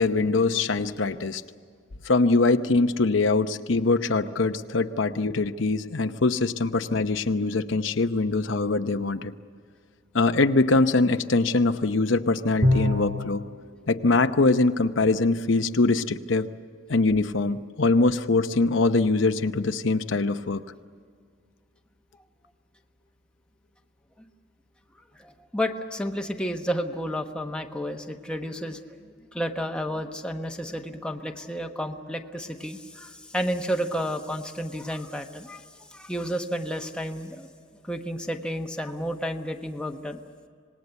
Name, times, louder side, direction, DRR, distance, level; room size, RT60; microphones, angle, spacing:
voice 1, 0.0-1.4 2.0-9.3 10.1-13.4 13.9-16.5 16.9-20.6, left 3 dB, 70° left, 8 dB, 0.8 m, -23 dB
Bowed string instrument, 12.6-13.5, left 1 dB, 70° right, 2.0 m, -23 dB
voice 2, 25.2-28.8 29.3-35.6 35.9-37.5 37.9-40.2, equal, 5° left, 3 dB, 1.2 m, -31 dB
26.5 x 19.5 x 8.1 m, 2.1 s
head